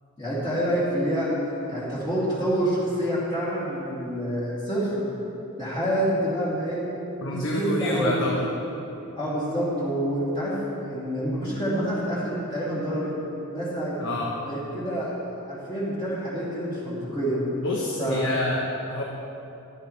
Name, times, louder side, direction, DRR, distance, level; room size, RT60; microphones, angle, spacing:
voice 1, 0.2-1.3 1.7-5.0 5.6-6.9 7.3-8.3 9.1-13.1 13.5-14.0 14.4-15.2 15.5-17.4 18.0-18.5, equal, 25° left, -10 dB, 2.8 m, -27 dB
voice 2, 7.2-8.4 14.0-14.3 17.6-18.6 18.9-19.0, left 1 dB, 65° left, -2 dB, 1.1 m, -27 dB
15.0 x 11.5 x 3.3 m, 2.9 s
head